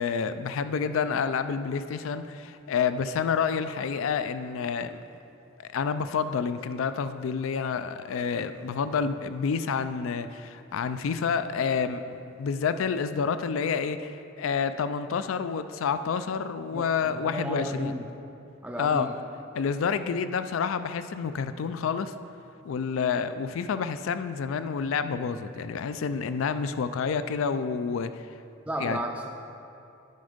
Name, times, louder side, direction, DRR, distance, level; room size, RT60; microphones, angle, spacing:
voice 1, 0.0-5.0 5.7-17.9 18.8-19.1 19.5-22.1 22.6-28.3 28.8-29.0, left 6 dB, 70° left, 11 dB, 0.4 m, -29 dB
voice 2, 16.7-18.1 18.6-19.2 28.7-29.3, right 1 dB, 5° right, 0 dB, 0.4 m, -33 dB
9.4 x 5.2 x 5.0 m, 2.7 s
head